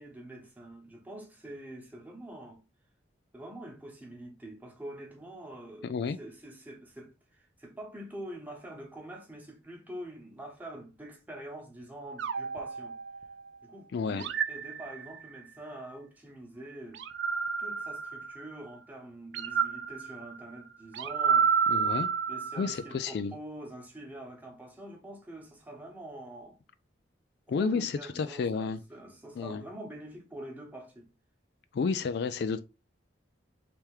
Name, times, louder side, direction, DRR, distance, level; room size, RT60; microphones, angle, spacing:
voice 1, 0.0-2.6 3.3-13.0 13.6-17.0 17.6-21.5 22.3-26.6 27.5-31.1, right 1 dB, 10° right, 1.1 m, -45 dB
voice 2, 5.8-6.2 13.9-14.2 21.7-22.1 22.6-23.3 27.5-28.8 29.4-29.6 31.7-32.6, left 5 dB, 55° left, 0.3 m, -31 dB
sound 1, 12.2-13.6 14.2-15.5 16.9-18.7 19.3-22.9, right 6 dB, 70° right, 0.4 m, -31 dB
3.5 x 2.9 x 4.7 m
head